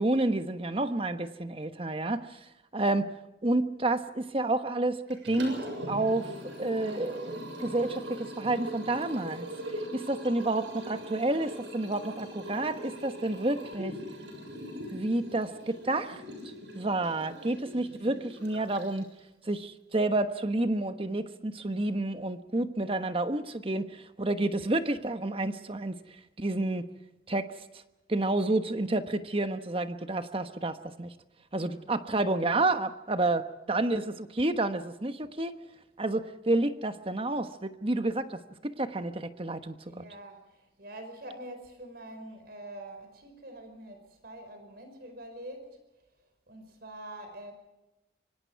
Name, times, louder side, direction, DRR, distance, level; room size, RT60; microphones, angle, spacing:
voice 1, 0.0-2.4 2.7-3.1 3.4-6.3 6.6-9.5 9.7-14.0 14.9-19.1 19.4-26.0 26.4-26.9 27.3-27.6 28.1-31.1 31.5-35.6 36.0-40.0, right 2 dB, 30° right, 9 dB, 1.2 m, -30 dB
Liquid, 5.1-19.2, equal, 85° right, 7.2 m, -41 dB
voice 2, 31.5-32.1 39.8-45.8 46.5-47.5, right 1 dB, 60° right, 7 dB, 5.2 m, -45 dB
25.0 x 25.0 x 4.8 m, 0.96 s
head